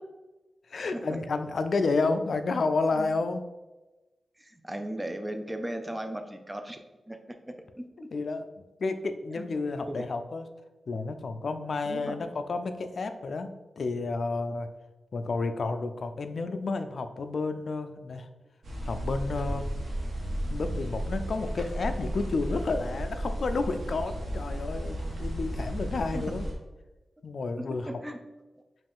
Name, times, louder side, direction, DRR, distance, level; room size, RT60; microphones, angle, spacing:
voice 1, 0.7-3.4 8.1-10.5 10.9-14.7 15.1-18.3 18.8-19.7 20.5-26.4 27.2-27.9, left 3 dB, 60° left, 8 dB, 0.3 m, -31 dB
voice 2, 4.4-6.8 7.1-7.2 7.5-7.9 9.3-9.4 9.9-10.1 11.9-12.3 26.1-26.3 27.6-28.2, right 1 dB, 10° right, 6 dB, 0.4 m, -37 dB
sound 1, 18.6-26.5, equal, 65° right, 1.1 m, -34 dB
5.3 x 2.5 x 3.5 m, 1.1 s
wide cardioid pair, 135°, 0 cm